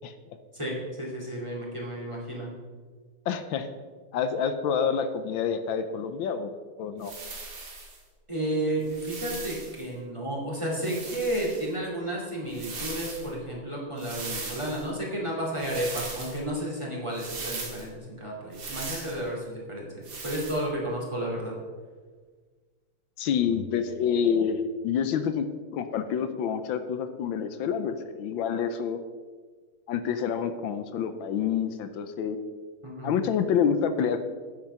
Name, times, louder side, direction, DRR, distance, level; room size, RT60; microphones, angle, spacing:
voice 1, 0.5-2.5 8.3-21.6 32.8-33.1, right 1 dB, 15° right, -3 dB, 2.2 m, -32 dB
voice 2, 3.3-3.7 4.1-6.5 6.8-7.1 23.2-25.5 25.7-29.0 29.9-32.4 33.0-34.2, left 7 dB, 75° left, 9 dB, 1.4 m, -27 dB
sound 1, 7.0-8.0 8.8-9.8 10.8-11.7 12.5-13.3 14.0-14.9 15.6-16.4 17.1-17.9 18.5-19.2 20.0-20.6, right 3 dB, 85° right, 2.8 m, -38 dB
9.2 x 7.4 x 5.5 m, 1.5 s
omnidirectional pair, 2.4 m